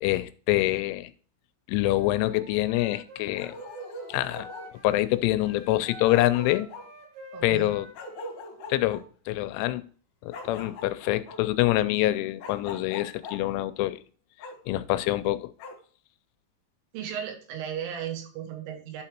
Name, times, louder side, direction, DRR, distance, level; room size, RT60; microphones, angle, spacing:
voice 1, 0.0-1.1 1.7-3.6 4.1-4.5 4.8-6.7 7.4-7.9 8.7-9.9 10.2-14.0 14.7-15.5, left 16 dB, 85° left, 3.0 m, -25 dB
Wind instrument woodwind instrument, 1.8-5.0 5.4-8.8, equal, 70° right, 4.9 m, -47 dB
Bark, 3.4-4.7 5.7-5.8 6.1-6.9 8.0-9.0 10.3-11.4 12.4-13.4 14.4-14.5 15.6-15.8, left 2 dB, 60° left, 3.0 m, -41 dB
voice 2, 7.3-7.7 16.9-19.0, right 9 dB, 90° right, 3.8 m, -35 dB
11.5 x 3.9 x 4.4 m
omnidirectional pair, 5.5 m